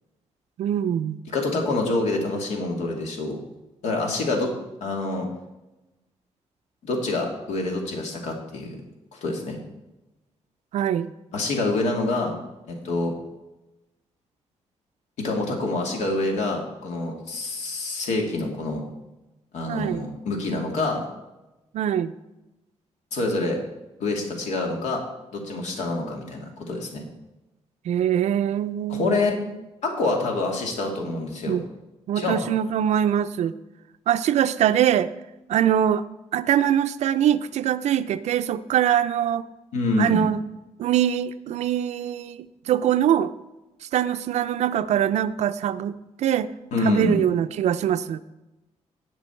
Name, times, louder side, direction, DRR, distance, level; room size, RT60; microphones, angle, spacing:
voice 1, 0.6-1.2 10.7-11.1 19.7-20.0 21.7-22.1 27.9-29.4 31.5-31.6 32.1-33.5 34.1-35.1 35.5-36.0 36.3-39.5 40.0-40.4 40.8-43.3 43.9-46.5 46.8-48.2, right 10 dB, 75° right, 11 dB, 0.6 m, -23 dB
voice 2, 1.3-3.4 3.8-4.5 4.8-5.3 6.8-8.8 9.1-9.6 11.3-12.3 12.7-13.1 15.2-18.8 19.5-21.0 23.1-23.6 24.0-25.0 25.3-27.1 28.9-29.3 29.8-31.6 32.2-32.4 39.7-40.2 46.7-47.2, left 2 dB, 85° left, 1 dB, 2.5 m, -26 dB
18.0 x 6.2 x 4.5 m, 1.0 s
wide cardioid pair, 180°, 12 cm